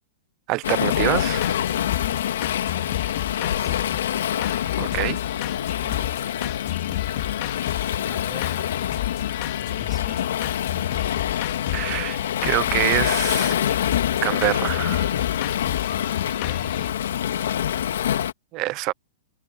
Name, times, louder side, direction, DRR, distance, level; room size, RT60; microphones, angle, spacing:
voice 1, 0.5-1.6 4.8-5.2 11.7-13.5 14.2-15.1 18.5-18.9, right 20 dB, 30° right, 0.5 m, -26 dB
Waves surf, 0.6-18.3, left 10 dB, 75° left, 2.1 m, -26 dB
sound 1, 0.9-16.9, left 20 dB, 40° left, 2.3 m, -32 dB
voice 2, 5.8-6.2 8.1-8.7 9.6-10.3, left 1 dB, ahead, 4.1 m, -45 dB
hypercardioid pair, 165°, 0 cm